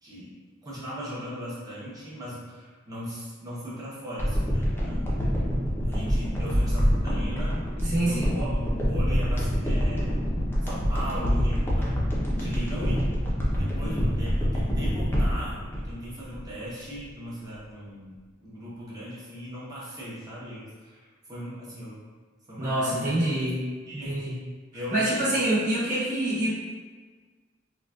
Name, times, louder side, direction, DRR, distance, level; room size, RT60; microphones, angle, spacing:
voice 1, 0.0-5.4 5.8-7.6 8.1-12.1 12.4-13.1 13.5-18.1 18.4-21.0 21.3-22.0 22.5-23.1 23.9-24.2 24.7-25.4, equal, 20° right, -8 dB, 0.9 m, -38 dB
sound 1, 4.2-16.6 16.9-17.0, equal, 10° left, 0.5 m, -26 dB
voice 2, 7.8-8.3 22.6-23.6 24.0-24.4 24.9-26.5, right 1 dB, 40° right, -10 dB, 1.2 m, -26 dB
3.9 x 2.3 x 2.3 m, 1.4 s
head